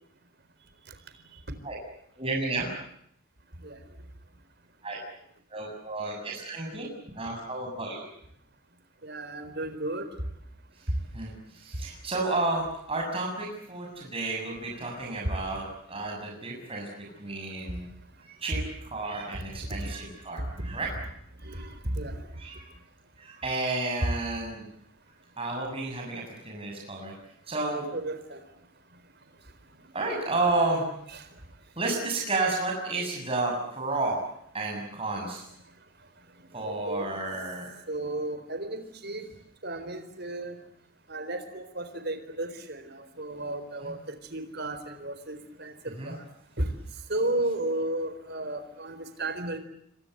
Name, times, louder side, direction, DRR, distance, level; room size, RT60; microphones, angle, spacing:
voice 1, 2.2-2.7 4.8-5.0 5.5-6.9 7.1-8.1 11.1-16.9 17.2-17.9 18.2-20.9 21.5-21.7 22.3-22.6 23.2-24.6 25.4-27.1 27.5-27.9 29.9-30.8 31.8-34.2 34.5-35.5 36.5-37.7 43.8-43.9 46.0-46.1, right 2 dB, 25° right, -1 dB, 7.2 m, -31 dB
voice 2, 9.0-10.1 19.8-19.9 21.4-22.2 24.0-24.1 27.9-28.4 31.1-31.2 36.7-37.2 37.9-39.3 39.6-40.6 41.1-44.0 44.3-45.7 46.0-46.2 46.6-46.7 47.1-49.6, right 1 dB, 50° right, 10 dB, 4.2 m, -33 dB
28.0 x 25.0 x 7.9 m, 0.74 s
head